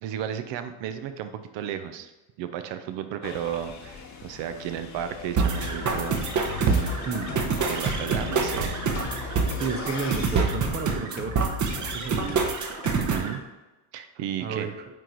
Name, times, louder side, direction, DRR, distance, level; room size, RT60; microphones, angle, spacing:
voice 1, 0.0-2.1 2.4-6.3 7.7-8.8 13.0-13.4 13.9-14.7, right 9 dB, 65° right, 10 dB, 0.7 m, -33 dB
sound 1, 3.2-10.5, left 5 dB, 35° left, 0.9 m, -42 dB
sound 2, 5.4-13.3, right 4 dB, 40° right, 0.9 m, -26 dB
sound 3, 5.6-13.0, left 6 dB, 60° left, 1.1 m, -38 dB
voice 2, 7.1-7.4 9.6-11.4 11.9-12.5 14.4-14.7, right 5 dB, 20° right, 7 dB, 0.5 m, -32 dB
9.0 x 3.1 x 3.9 m, 1.1 s
cardioid pair, 115°, 48 cm